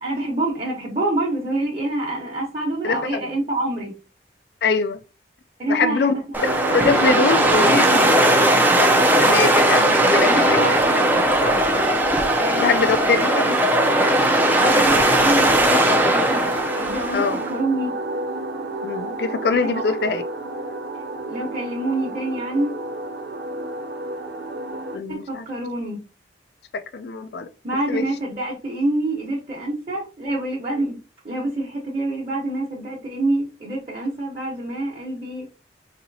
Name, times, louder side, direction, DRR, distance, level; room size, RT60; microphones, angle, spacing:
voice 1, 0.0-3.9 5.6-6.4 10.2-10.9 11.4-11.7 12.3-13.5 14.6-16.4 16.7-17.9 19.5-19.9 21.3-22.7 25.1-26.0 27.6-31.0 31.2-35.5, right 2 dB, 35° right, 1.0 m, -26 dB
voice 2, 2.8-3.2 4.6-5.0 5.7-6.1 6.4-8.5 9.2-10.7 12.6-13.2 17.1-17.4 18.8-20.2 24.9-25.4 26.7-27.5 27.9-28.0, left 4 dB, 60° left, 0.4 m, -23 dB
sound 1, 6.3-17.5, right 1 dB, 10° right, 0.4 m, -18 dB
sound 2, 6.4-25.0, right 2 dB, 65° right, 0.6 m, -29 dB
4.2 x 2.8 x 2.7 m
head